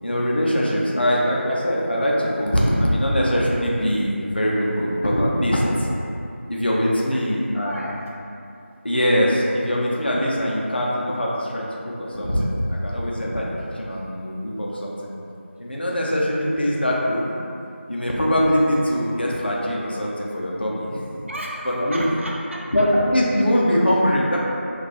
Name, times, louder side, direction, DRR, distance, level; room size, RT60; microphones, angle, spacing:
voice 1, 0.0-5.9 6.5-7.8 8.8-15.1 15.6-17.3 17.9-21.1 21.7-22.0 22.7-24.4, equal, 50° left, -4 dB, 0.4 m, -22 dB
voice 2, 7.1-8.0 21.3-22.7, right 1 dB, 70° right, -4 dB, 0.5 m, -34 dB
2.8 x 2.2 x 2.4 m, 2.6 s
figure-of-eight pair, 175°, 7 cm